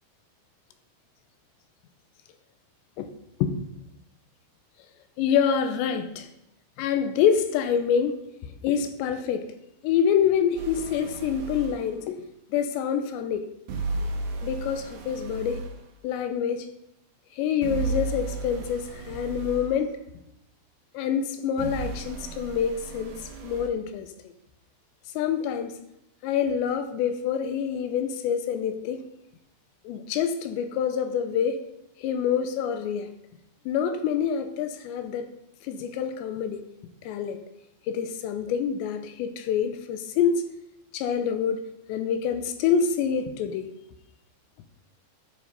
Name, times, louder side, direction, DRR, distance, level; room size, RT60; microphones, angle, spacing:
voice 1, 5.2-6.3 6.8-9.5 9.8-12.2 12.5-13.5 14.4-15.6 16.0-16.7 17.3-20.0 20.9-24.1 25.2-25.8 26.2-29.0 29.8-31.6 32.0-33.1 33.7-35.3 35.6-36.6 37.0-37.4 37.9-40.5 40.9-41.6 41.9-43.7, left 7 dB, 85° left, 8 dB, 2.9 m, -26 dB
sound 1, 10.6-11.8 13.7-15.8 17.6-19.7 21.6-23.7, right 3 dB, 75° right, 1.8 m, -34 dB
11.5 x 7.5 x 4.1 m, 0.81 s
omnidirectional pair, 5.1 m